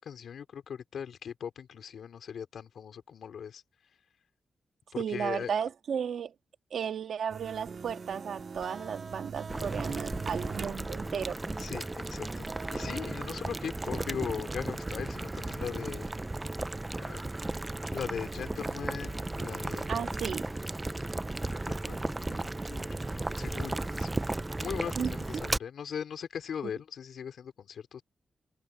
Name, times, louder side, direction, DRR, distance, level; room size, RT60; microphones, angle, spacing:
voice 1, 0.0-3.6 4.9-5.5 11.6-16.1 17.0-17.2 17.9-20.1 21.4-24.3 24.6-28.0, left 7 dB, 80° left, 3.7 m, -40 dB
voice 2, 5.0-6.3 6.7-11.4 19.9-20.5 25.0-25.1, right 7 dB, 75° right, 1.7 m, -34 dB
sound 1, 7.3-10.8 11.2-12.0, right 6 dB, 60° right, 2.4 m, -44 dB
sound 2, 7.7-15.2, right 4 dB, 35° right, 0.9 m, -46 dB
Boiling, 9.5-25.6, right 2 dB, 15° right, 0.3 m, -35 dB
wide cardioid pair, 155°, 0 cm